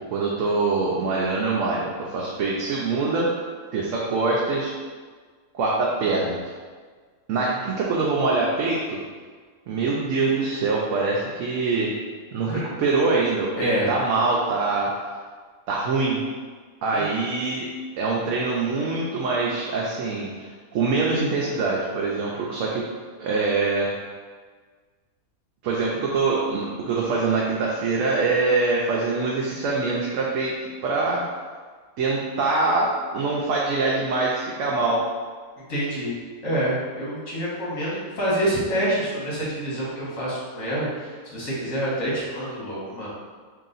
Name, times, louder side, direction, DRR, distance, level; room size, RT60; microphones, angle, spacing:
voice 1, 0.0-3.3 3.7-4.7 5.5-6.5 7.3-9.0 9.7-11.9 12.3-14.9 15.7-16.2 16.8-17.7 18.0-22.8 23.2-23.9 25.6-30.5 30.8-31.2 32.0-35.0, right 3 dB, 70° right, -4 dB, 0.9 m, -24 dB
voice 2, 13.6-13.9 16.9-17.0 35.6-36.2 36.4-43.1, right 1 dB, 70° left, -7 dB, 1.7 m, -27 dB
3.2 x 2.8 x 3.9 m, 1.5 s
omnidirectional pair, 1.5 m